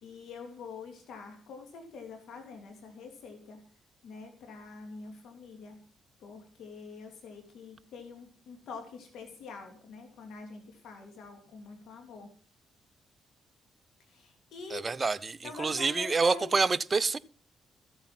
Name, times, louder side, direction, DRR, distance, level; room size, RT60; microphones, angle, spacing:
voice 1, 0.0-3.6 4.0-5.8 6.2-12.3 14.1-15.0 15.4-16.5, left 4 dB, 75° left, 2.8 m, -45 dB
voice 2, 14.7-17.2, right 4 dB, 30° right, 0.6 m, -27 dB
14.5 x 8.2 x 5.9 m
cardioid pair, 90°, 0 cm